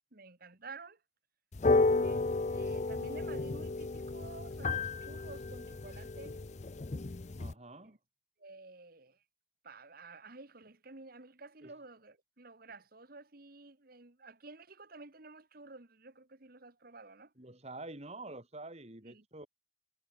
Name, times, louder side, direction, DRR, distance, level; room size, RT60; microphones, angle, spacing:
voice 1, 0.1-1.0 2.0-6.4 7.8-8.0 8.4-9.2 9.6-17.3 19.0-19.3, right 3 dB, 50° right, 1.7 m, -52 dB
sound 1, 1.5-7.5, left 3 dB, 35° left, 0.6 m, -32 dB
voice 2, 7.4-8.0 11.6-11.7 17.4-19.5, right 2 dB, 35° right, 2.8 m, -47 dB
head